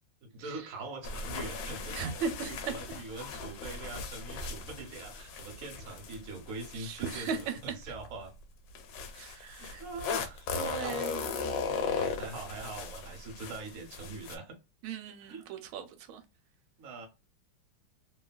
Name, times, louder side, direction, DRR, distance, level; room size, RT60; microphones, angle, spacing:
voice 1, 0.2-8.3 9.1-11.0 11.5-14.6 15.2-15.5 16.8-17.1, right 3 dB, 55° right, 1.0 m, -43 dB
sound 1, 1.0-8.1 8.7-14.4, left 5 dB, 75° left, 1.2 m, -38 dB
voice 2, 1.9-2.7 6.7-7.5 9.1-9.8 10.5-11.2 14.8-16.2, right 6 dB, 90° right, 1.4 m, -37 dB
3.2 x 2.3 x 2.2 m
omnidirectional pair, 2.2 m